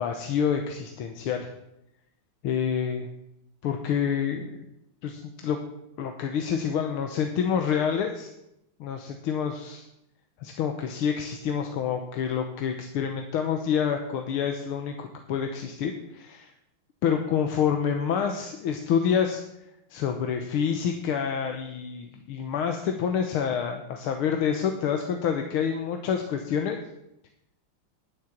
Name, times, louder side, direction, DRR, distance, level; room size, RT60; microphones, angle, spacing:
voice 1, 0.0-1.5 2.4-3.1 3.6-4.6 5.0-5.6 6.0-8.3 8.8-9.8 10.4-16.5 17.0-19.4 19.9-26.8, left 7 dB, 85° left, 5 dB, 1.9 m, -27 dB
10.5 x 9.8 x 7.4 m, 0.84 s
omnidirectional pair, 2.3 m